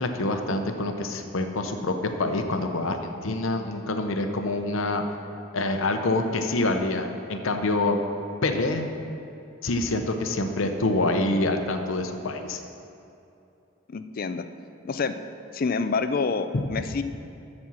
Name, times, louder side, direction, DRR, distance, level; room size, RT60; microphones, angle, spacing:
voice 1, 0.0-5.0 5.5-8.0 8.4-8.9 9.6-12.6 16.5-16.6, left 2 dB, 65° left, 6 dB, 0.7 m, -26 dB
voice 2, 13.9-14.4 14.8-15.2 15.5-17.0, left 4 dB, 40° left, 10 dB, 0.4 m, -27 dB
13.0 x 4.4 x 6.2 m, 2.7 s
head